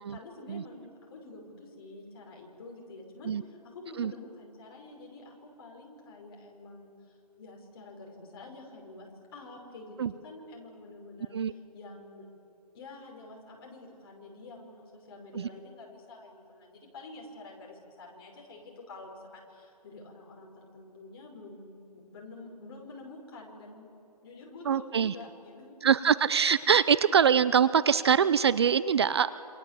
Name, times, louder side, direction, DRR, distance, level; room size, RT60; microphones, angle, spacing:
voice 1, 0.0-12.2 12.7-23.9 24.2-25.8, left 2 dB, 35° left, 0 dB, 5.5 m, -48 dB
voice 2, 24.7-25.1 25.8-29.3, right 7 dB, 40° right, 16 dB, 0.5 m, -24 dB
27.5 x 26.0 x 7.6 m, 2.7 s
hypercardioid pair, 160°, 21 cm